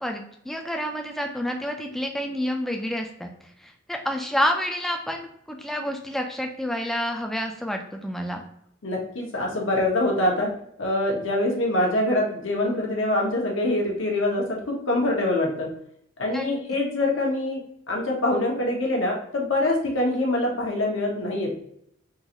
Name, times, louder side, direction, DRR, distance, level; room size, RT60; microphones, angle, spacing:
voice 1, 0.0-3.3 3.6-8.4 16.3-16.5, equal, ahead, 3 dB, 0.4 m, -29 dB
voice 2, 8.8-10.5 10.8-15.7 16.2-17.6 17.9-21.5, left 1 dB, 75° left, -1 dB, 1.0 m, -24 dB
3.8 x 2.5 x 2.9 m, 0.71 s
head